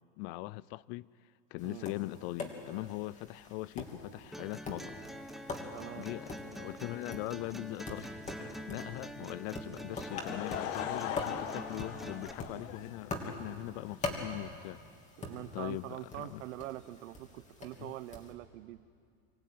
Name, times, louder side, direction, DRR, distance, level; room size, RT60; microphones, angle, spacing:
voice 1, 0.2-1.1 1.5-5.0 5.9-14.8 15.5-16.4 17.8-17.9, left 20 dB, 50° left, 0.5 m, -41 dB
Tap, 1.6-18.3, left 2 dB, 20° left, 2.9 m, -44 dB
sound 1, 4.3-12.3, equal, ahead, 0.8 m, -46 dB
voice 2, 5.7-6.1 15.2-18.8, right 16 dB, 75° right, 0.9 m, -44 dB
Laughter / Crowd, 9.9-13.4, left 10 dB, 80° left, 1.5 m, -40 dB
25.0 x 15.5 x 9.4 m
supercardioid pair, 135°, 39 cm